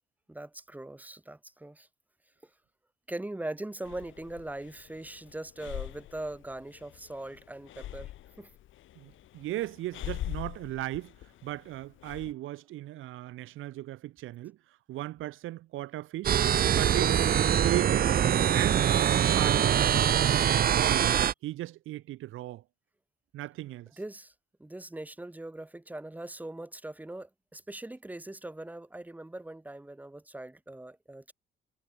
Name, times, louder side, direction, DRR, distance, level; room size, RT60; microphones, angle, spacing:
voice 1, 0.3-1.9 2.4-2.5 3.1-8.1 8.4-8.5 24.0-24.3 24.6-31.3, right 1 dB, 10° right, 4.8 m, -41 dB
Breathing, 3.8-12.3, left 13 dB, 80° left, 3.9 m, -43 dB
voice 2, 9.0-11.1 11.4-14.6 14.9-16.4 16.7-17.2 17.6-18.1 18.5-21.1 21.4-22.6 23.3-23.9, right 15 dB, 90° right, 1.5 m, -37 dB
sound 1, 16.2-21.3, right 9 dB, 50° right, 1.7 m, -24 dB
cardioid pair, 150°, 20 cm